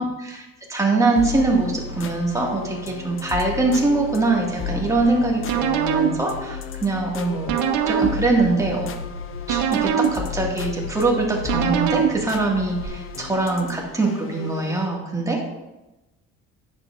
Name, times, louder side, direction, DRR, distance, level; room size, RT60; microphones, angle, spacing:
voice 1, 0.0-7.5 7.9-8.9 9.5-15.5, right 3 dB, 10° right, -2 dB, 1.9 m, -23 dB
sound 1, 1.1-15.0, left 6 dB, 45° left, 0.7 m, -34 dB
sound 2, 5.0-12.9, right 7 dB, 75° right, 0.8 m, -26 dB
10.0 x 7.4 x 2.5 m, 1.0 s
cardioid pair, 110°, 29 cm